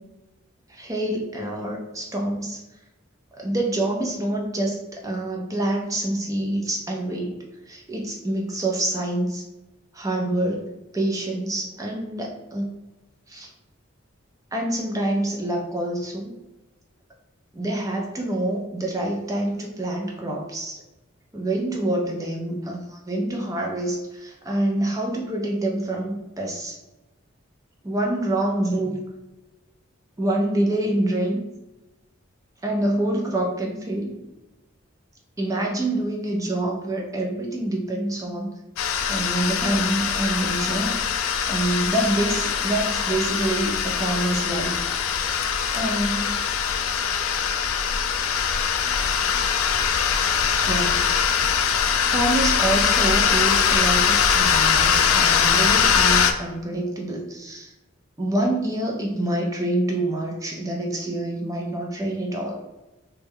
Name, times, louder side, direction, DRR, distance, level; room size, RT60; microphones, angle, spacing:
voice 1, 0.7-2.6 3.4-9.4 9.9-10.7 10.9-12.7 13.3-13.5 14.5-16.3 17.5-20.8 21.3-26.8 27.8-29.0 30.2-31.4 32.6-34.2 35.4-38.5 39.1-44.8 45.7-46.4 50.7-51.1 52.1-57.7 58.2-62.6, right 1 dB, 15° right, -1 dB, 0.5 m, -26 dB
sound 1, 38.8-56.3, left 7 dB, 80° left, 0.3 m, -22 dB
3.1 x 2.3 x 3.5 m, 1.0 s
head